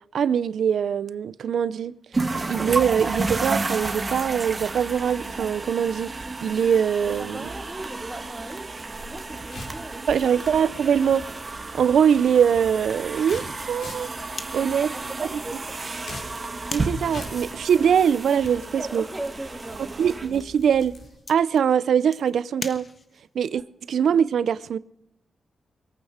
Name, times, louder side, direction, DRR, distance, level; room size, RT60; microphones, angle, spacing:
voice 1, 0.1-2.0 2.5-6.1 6.4-7.5 10.1-11.3 11.7-14.1 14.5-15.0 16.7-19.0 20.0-21.0 21.3-22.9 23.3-23.6 23.9-24.8, right 8 dB, 85° right, 0.5 m, -22 dB
sound 1, 2.1-21.0, right 3 dB, 35° right, 1.5 m, -32 dB
voice 2, 7.1-8.7 9.0-10.2 14.5-15.6 18.8-20.0, right 1 dB, 10° right, 2.4 m, -38 dB
sound 2, 9.2-21.3, left 2 dB, 70° left, 4.9 m, -45 dB
sound 3, 14.3-23.4, left 3 dB, 45° left, 1.3 m, -43 dB
23.5 x 8.8 x 5.0 m
cardioid pair, 80°, 0 cm